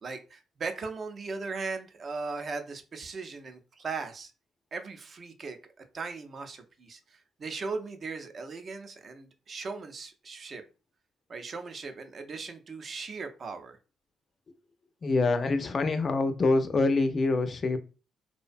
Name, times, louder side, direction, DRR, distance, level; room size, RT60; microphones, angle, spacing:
voice 1, 0.0-4.3 4.7-10.6 11.3-13.8, right 4 dB, 45° right, 0.4 m, -38 dB
voice 2, 15.0-17.8, left 3 dB, 40° left, 0.4 m, -25 dB
2.5 x 2.1 x 2.4 m
cardioid pair, 90°, 0 cm